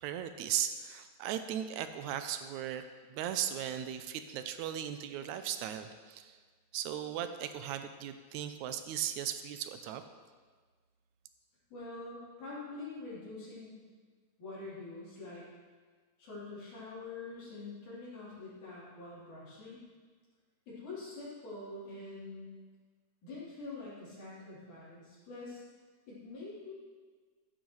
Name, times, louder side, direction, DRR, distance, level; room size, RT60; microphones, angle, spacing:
voice 1, 0.0-2.8 3.1-6.4 6.7-10.0, right 10 dB, 80° right, 9 dB, 1.9 m, -37 dB
voice 2, 11.7-13.8 14.4-15.4 16.2-19.8 20.7-22.5 23.2-25.6 26.1-26.7, left 3 dB, 75° left, -11 dB, 5.1 m, -45 dB
14.5 x 10.0 x 3.2 m, 1.5 s
omnidirectional pair, 3.6 m